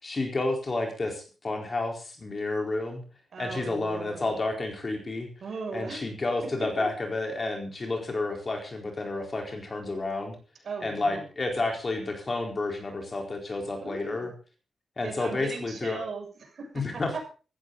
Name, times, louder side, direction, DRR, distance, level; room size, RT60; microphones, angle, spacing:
voice 1, 0.0-3.0 3.4-5.3 5.7-10.4 10.8-14.3 15.0-16.0 16.7-17.1, left 2 dB, 30° left, 3 dB, 4.4 m, -30 dB
voice 2, 3.3-4.4 5.4-6.0 10.6-11.3 13.8-14.3 15.0-17.2, right 4 dB, 55° right, 2 dB, 7.2 m, -38 dB
17.0 x 15.0 x 4.1 m, 0.35 s
wide cardioid pair, 150°, 0 cm